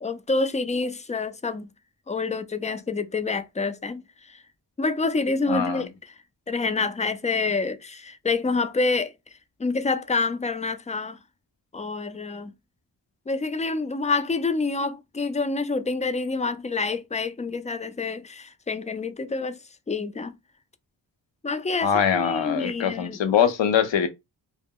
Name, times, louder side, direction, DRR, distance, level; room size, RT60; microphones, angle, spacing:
voice 1, 0.0-1.7 2.1-4.4 4.8-6.1 6.5-9.1 9.6-11.2 11.7-12.5 13.3-19.6 19.9-20.3 21.4-23.5, left 3 dB, 20° left, 0.3 m, -27 dB
voice 2, 5.5-5.9 21.8-24.1, left 8 dB, 85° left, 0.6 m, -23 dB
2.2 x 2.0 x 3.5 m
cardioid pair, 50°, 43 cm